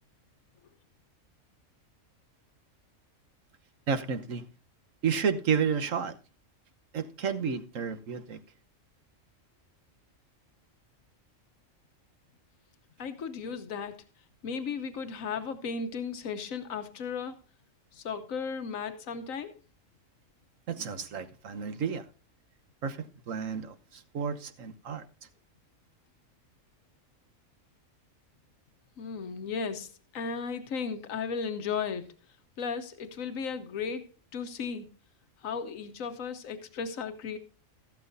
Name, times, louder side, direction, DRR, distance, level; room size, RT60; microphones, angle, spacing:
voice 1, 3.9-4.4 5.0-6.2 6.9-8.4 20.7-22.0 22.8-25.0, right 6 dB, 75° right, 1.4 m, -31 dB
voice 2, 13.0-14.0 14.4-17.4 17.9-19.6 29.0-32.1 32.6-34.9 35.4-37.4, left 5 dB, 90° left, 1.4 m, -35 dB
14.5 x 12.0 x 2.6 m
omnidirectional pair, 1.4 m